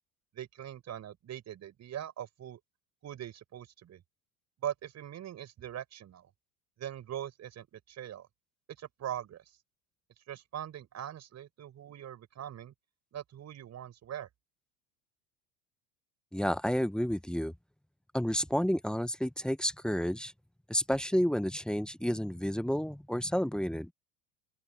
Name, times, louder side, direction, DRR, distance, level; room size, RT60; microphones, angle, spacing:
voice 1, 0.3-2.6 3.0-4.0 4.6-6.3 6.8-8.3 8.8-9.4 10.3-12.7 13.1-14.3, right 10 dB, 40° right, 6.6 m, -41 dB
voice 2, 16.3-17.5 18.1-20.3 20.7-23.9, equal, ahead, 1.5 m, -30 dB
open air
hypercardioid pair, 75°, 43 cm